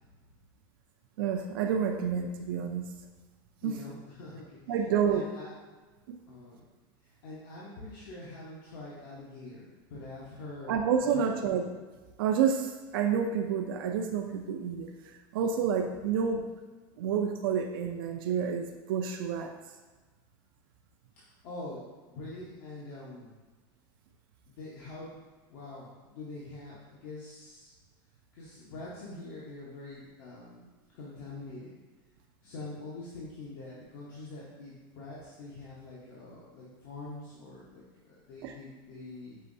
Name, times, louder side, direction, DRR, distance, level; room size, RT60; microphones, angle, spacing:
voice 1, 1.2-2.9 3.6-3.7 4.7-5.3 6.1-6.2 10.7-11.6 12.2-14.9 15.3-16.5 17.0-19.5 38.4-38.5, right 7 dB, 85° right, 4 dB, 0.4 m, -29 dB
voice 2, 3.6-4.8 5.1-5.5 6.3-6.6 7.0-11.4 21.2-23.3 24.5-25.1 25.5-27.7 28.3-30.7 30.9-31.7 32.4-39.4, left 2 dB, 75° left, -7 dB, 1.0 m, -45 dB
5.5 x 3.0 x 2.6 m, 1.3 s
supercardioid pair, 135°, 12 cm